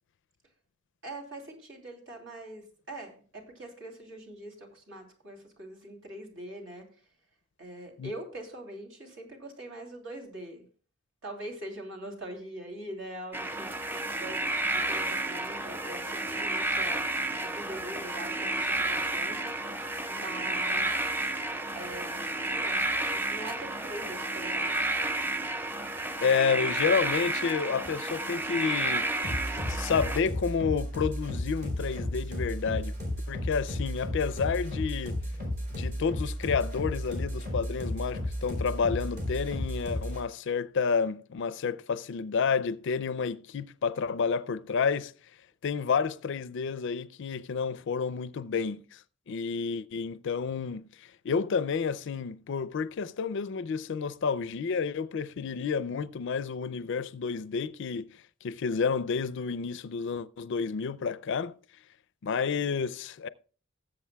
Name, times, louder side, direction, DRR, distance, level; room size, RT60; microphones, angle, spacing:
voice 1, 1.0-7.0 7.6-10.7 11.2-21.3 21.7-24.8, right 1 dB, 65° right, 3.0 m, -43 dB
sound 1, 13.3-30.2, right 2 dB, 10° right, 0.4 m, -31 dB
voice 2, 26.2-29.1 29.7-32.9 33.3-35.2 35.7-45.1 45.6-49.0 49.3-61.5 62.2-63.3, left 5 dB, 60° left, 0.4 m, -30 dB
sound 2, 29.2-40.2, left 1 dB, 50° right, 4.1 m, -33 dB
19.0 x 7.8 x 2.2 m
head